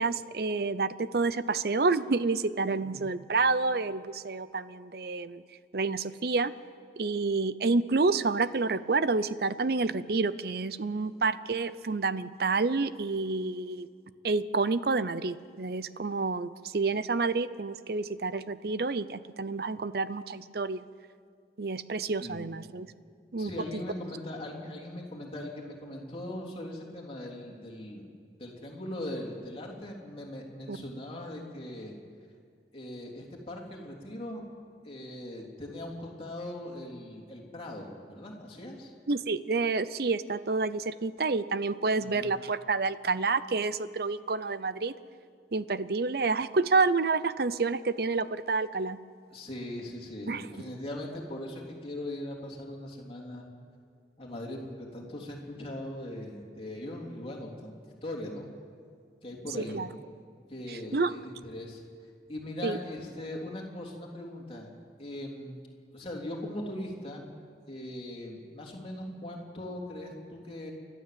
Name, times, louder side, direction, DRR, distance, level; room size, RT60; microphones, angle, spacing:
voice 1, 0.0-5.4 5.7-6.5 7.0-13.9 14.2-20.8 21.6-22.9 23.3-23.5 30.7-30.8 39.1-44.9 45.5-49.0 50.3-50.5 59.7-59.9 60.7-61.1 62.6-62.8, right 3 dB, 55° right, 15 dB, 0.6 m, -29 dB
voice 2, 23.4-28.0 28.4-31.9 32.7-34.4 34.8-38.9 42.0-42.3 49.3-53.5 54.2-57.7 58.0-58.5 59.2-59.9 60.5-61.8 62.3-64.7 65.0-65.6 65.9-67.3 67.7-70.7, left 1 dB, 30° left, -1 dB, 3.3 m, -40 dB
29.5 x 12.5 x 7.6 m, 2.2 s
head